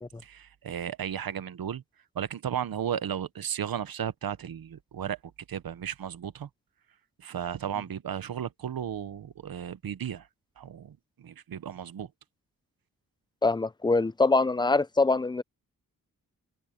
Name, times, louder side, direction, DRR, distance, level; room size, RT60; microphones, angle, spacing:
voice 1, 0.2-1.8 2.1-5.2 5.5-6.5 7.2-10.3 10.6-12.1, right 9 dB, 85° right, 0.9 m, -34 dB
voice 2, 13.4-15.4, left 3 dB, 15° left, 0.4 m, -24 dB
open air
wide cardioid pair, 145°, 34 cm